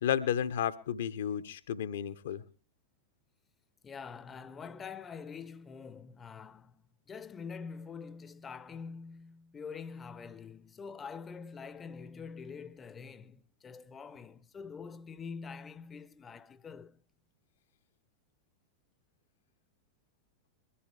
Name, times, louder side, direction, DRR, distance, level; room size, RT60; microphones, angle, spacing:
voice 1, 0.0-2.4, left 9 dB, 60° left, 1.1 m, -32 dB
voice 2, 3.8-17.0, left 5 dB, 20° left, 0.9 m, -45 dB
22.0 x 14.5 x 3.4 m
figure-of-eight pair, 90°, 0 cm